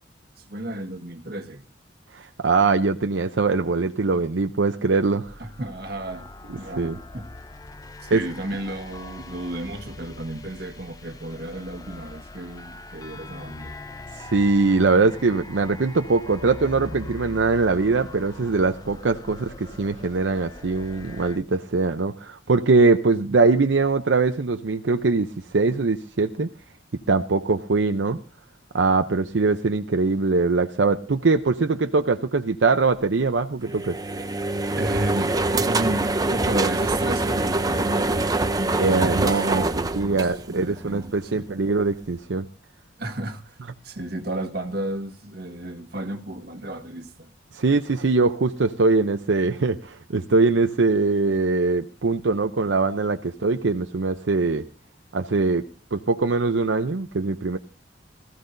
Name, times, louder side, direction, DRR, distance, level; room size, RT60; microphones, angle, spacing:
voice 1, 0.4-1.6 5.4-7.3 8.0-13.8 34.8-41.5 43.0-47.3, right 1 dB, 60° right, 1.6 m, -33 dB
voice 2, 2.1-5.4 6.8-7.0 8.1-8.2 14.1-26.5 27.1-28.2 28.7-34.0 38.8-42.5 47.5-54.6 55.1-55.6 55.9-57.6, right 3 dB, 80° right, 0.7 m, -22 dB
sound 1, 5.2-21.4, left 2 dB, 20° left, 0.8 m, -42 dB
sound 2, 33.6-40.9, right 2 dB, 20° right, 0.6 m, -24 dB
20.0 x 15.0 x 2.6 m
head